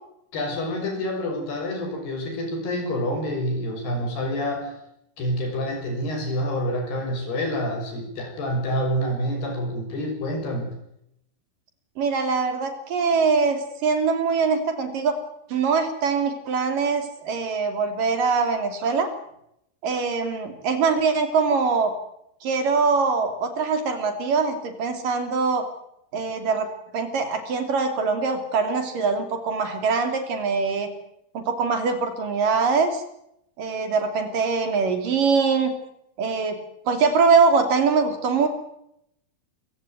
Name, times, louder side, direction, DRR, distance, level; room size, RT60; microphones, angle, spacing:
voice 1, 0.3-4.7 5.2-10.7, equal, 75° left, 4 dB, 8.2 m, -27 dB
voice 2, 12.0-15.2 15.5-19.1 19.8-21.9 22.4-25.6 26.1-26.7 26.9-30.9 31.3-33.0 33.6-35.7 36.2-36.6 36.9-38.5, right 5 dB, 60° right, 7 dB, 4.3 m, -23 dB
26.5 x 16.5 x 9.3 m, 0.78 s
omnidirectional pair, 4.6 m